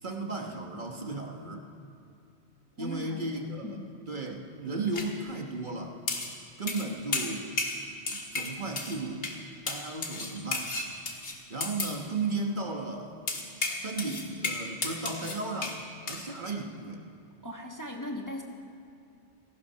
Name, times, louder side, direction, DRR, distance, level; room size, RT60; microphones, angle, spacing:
voice 1, 0.0-1.7 2.8-3.6 4.1-6.0 6.6-7.5 8.1-9.2 9.6-10.7 11.5-13.2 13.7-15.8 16.1-17.0, right 3 dB, 45° right, 2 dB, 1.5 m, -35 dB
voice 2, 2.8-4.0 17.4-18.4, left 1 dB, 15° left, 0 dB, 1.3 m, -39 dB
sound 1, 4.9-5.1 6.1-6.3 6.7-6.9 7.1-7.8 8.1-9.0 9.2-9.4 9.7-12.0 13.3-15.8 16.1-16.2, left 3 dB, 80° left, 1.9 m, -33 dB
17.0 x 14.5 x 5.7 m, 2.6 s
omnidirectional pair, 1.1 m